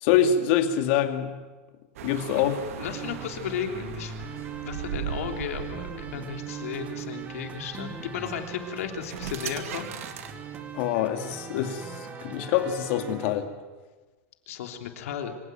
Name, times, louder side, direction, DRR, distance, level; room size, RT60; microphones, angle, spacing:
voice 1, 0.0-1.3 2.0-2.6 10.7-13.5, left 9 dB, 55° left, 6 dB, 2.4 m, -25 dB
sound 1, 2.0-10.8, right 9 dB, 85° right, 2.1 m, -39 dB
voice 2, 2.8-4.2 4.6-10.1 14.5-15.3, left 8 dB, 85° left, 4 dB, 3.3 m, -35 dB
sound 2, 2.9-13.3, right 6 dB, 20° right, 2.0 m, -40 dB
25.0 x 16.5 x 9.2 m, 1.3 s
supercardioid pair, 160°, 7 cm